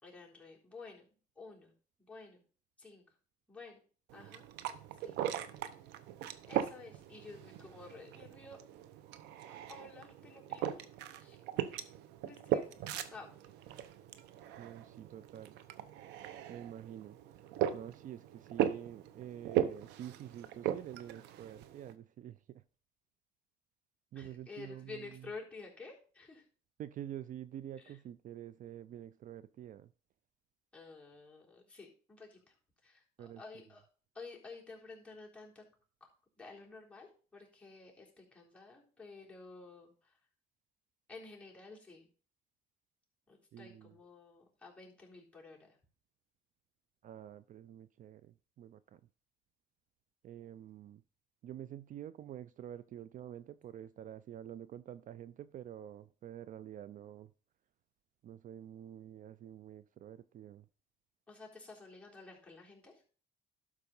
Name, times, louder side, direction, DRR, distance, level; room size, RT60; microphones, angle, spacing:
voice 1, 0.0-1.7 2.0-2.4 2.8-3.0 3.5-3.8 4.1-4.4 5.0-5.2 6.5-8.6 9.5-10.9 11.2-11.4 12.2-12.8 13.1-13.3 24.1-26.4 27.8-28.0 30.7-32.5 32.8-33.9 34.1-35.6 36.0-36.1 36.4-40.2 41.1-42.1 43.3-45.8 61.3-63.0, left 3 dB, 5° left, -4 dB, 3.8 m, -52 dB
sound 1, 4.1-21.9, right 11 dB, 90° right, 0.8 m, -39 dB
voice 2, 14.6-15.6 16.5-17.4 17.7-22.6 24.1-25.3 26.8-29.9 33.2-33.4 43.5-43.9 47.0-49.0 50.2-51.0 51.4-57.3 58.2-60.7, right 11 dB, 50° right, 16 dB, 0.4 m, -48 dB
12.0 x 4.8 x 5.4 m, 0.40 s
cardioid pair, 110°, 17 cm